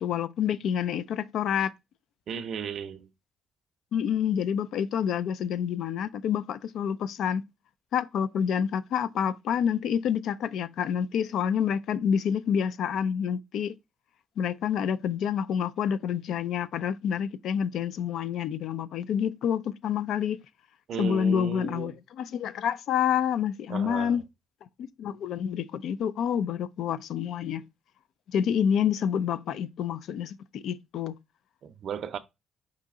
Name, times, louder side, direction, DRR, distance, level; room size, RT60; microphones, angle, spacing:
voice 1, 0.0-1.7 3.9-7.4 7.9-13.7 14.4-20.4 21.0-24.2 24.8-27.6 28.3-31.2, left 8 dB, 75° left, 0.3 m, -28 dB
voice 2, 2.3-3.1 20.9-22.0 23.7-24.2 31.6-32.2, right 7 dB, 65° right, 0.5 m, -35 dB
5.0 x 2.8 x 3.5 m
cardioid pair, 90°, 0 cm